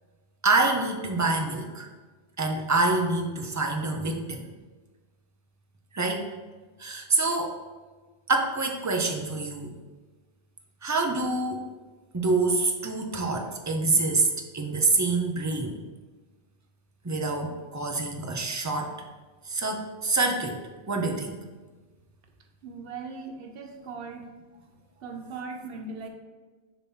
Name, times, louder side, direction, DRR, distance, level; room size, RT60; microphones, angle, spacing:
voice 1, 0.4-1.9 2.4-4.5 5.9-6.3 6.8-7.6 8.3-9.8 10.8-11.7 12.1-15.8 17.0-19.0 19.4-21.4, right 3 dB, 20° right, 3 dB, 0.5 m, -26 dB
voice 2, 22.6-24.4 25.0-26.1, right 4 dB, 60° right, 4 dB, 1.0 m, -39 dB
7.0 x 2.9 x 5.5 m, 1.3 s
omnidirectional pair, 1.1 m